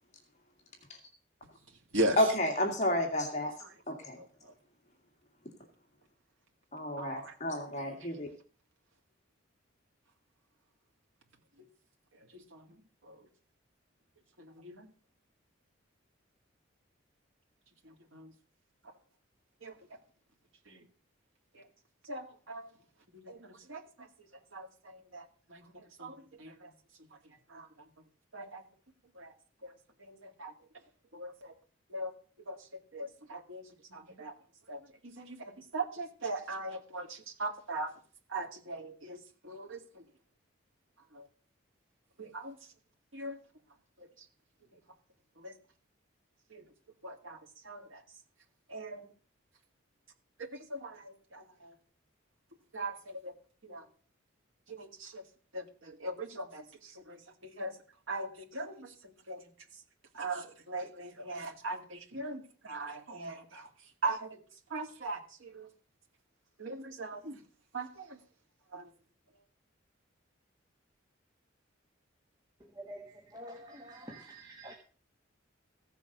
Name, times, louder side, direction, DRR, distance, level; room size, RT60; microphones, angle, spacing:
voice 1, 2.2-3.5 3.9-4.2 6.7-8.3, left 1 dB, 35° left, 3 dB, 2.1 m, -31 dB
voice 2, 7.0-7.3 12.3-12.6 13.0-13.2 14.6-14.9 18.1-18.3 19.6-19.7 20.7-20.8 21.5-21.6 22.1-22.7 23.2-24.1 24.5-25.2 25.5-25.6 26.0-26.7 27.5-27.7 28.3-28.6 29.2-29.3 29.6-29.7 30.1-30.5 31.1-31.5 31.9-32.1 32.5-32.6 32.9-33.6 33.9-34.3 34.7-34.8 35.2-37.9 38.3-39.2 39.4-39.8 41.1-41.3 42.2-42.6 43.1-43.4 45.4-45.5 46.5-46.6 47.0-47.4 47.6-48.0 48.7-49.1 50.4-51.7 52.7-53.3 53.7-53.8 54.7-55.2 55.5-57.2 57.6-57.8 58.1-58.9 59.3-59.4 60.1-63.7 64.0-64.4 64.7-65.7 66.6-67.4 67.7-68.1 68.7-68.9, right 2 dB, 90° right, 2 dB, 2.3 m, -39 dB
voice 3, 72.6-74.7, right 1 dB, 20° right, 2 dB, 1.5 m, -47 dB
15.5 x 7.0 x 6.6 m, 0.40 s
head